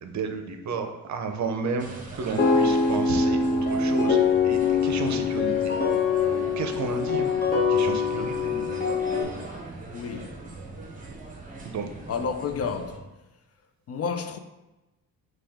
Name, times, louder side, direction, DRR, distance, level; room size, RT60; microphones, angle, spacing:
voice 1, 0.0-4.2 4.4-5.7 6.6-7.3 7.7-8.5 11.6-11.9, right 4 dB, 55° right, 0.7 m, -32 dB
sound 1, 1.8-13.0, right 3 dB, 20° right, 1.0 m, -40 dB
sound 2, 2.4-9.2, left 5 dB, 25° left, 0.9 m, -23 dB
voice 2, 9.9-10.4 12.1-13.1 13.9-14.4, left 6 dB, 45° left, 0.4 m, -31 dB
6.0 x 2.4 x 3.5 m
cardioid pair, 100°, 35 cm